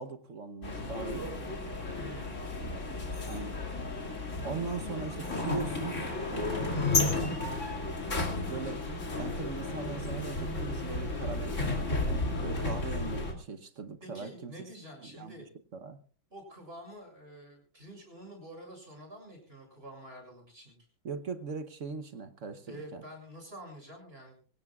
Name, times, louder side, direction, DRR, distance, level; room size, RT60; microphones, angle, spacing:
voice 1, 0.0-1.6 3.3-3.6 4.4-6.0 6.3-7.3 8.5-8.8 9.2-11.9 12.4-14.5 15.0-15.4 15.7-16.0 21.0-23.0, right 5 dB, 50° right, 10 dB, 1.0 m, -40 dB
sound 1, 0.6-13.3, left 2 dB, 35° left, 2.9 m, -33 dB
voice 2, 1.9-2.5 14.0-15.4 16.3-20.7 22.7-24.5, equal, 30° right, 2 dB, 7.1 m, -48 dB
24.5 x 17.0 x 2.4 m, 0.37 s
omnidirectional pair, 2.1 m